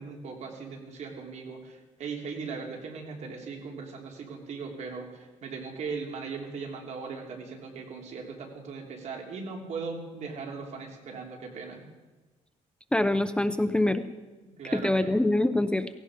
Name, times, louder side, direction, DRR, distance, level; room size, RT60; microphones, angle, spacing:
voice 1, 0.0-11.9 14.6-15.1, right 5 dB, 65° right, 1 dB, 3.2 m, -39 dB
voice 2, 12.9-14.0 14.7-15.9, left 1 dB, 5° left, 10 dB, 0.6 m, -24 dB
17.0 x 16.5 x 5.0 m, 1.2 s
cardioid pair, 130°, 13 cm